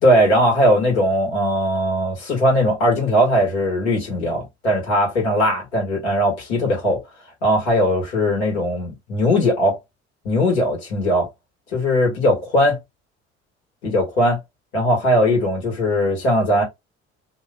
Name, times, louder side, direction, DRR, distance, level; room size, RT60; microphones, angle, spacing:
voice 1, 0.0-7.0 7.4-9.8 10.2-11.3 11.7-12.8 13.8-14.4 14.7-16.6, equal, 70° left, 1.7 m, -19 dB
2.9 x 2.3 x 3.6 m
figure-of-eight pair, 50°, 34 cm